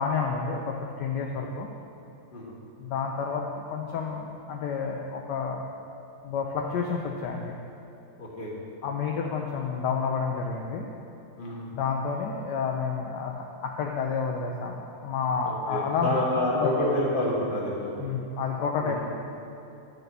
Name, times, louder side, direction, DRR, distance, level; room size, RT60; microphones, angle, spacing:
voice 1, 0.0-1.7 2.8-5.6 6.2-7.6 8.8-10.9 11.7-16.2 16.5-16.7 18.0-19.0, left 5 dB, 75° left, 1 dB, 1.0 m, -30 dB
voice 2, 8.2-8.5 11.4-11.7 15.4-18.1 18.8-19.0, left 1 dB, 25° left, -5 dB, 1.5 m, -28 dB
10.5 x 4.1 x 6.7 m, 2.9 s
omnidirectional pair, 2.3 m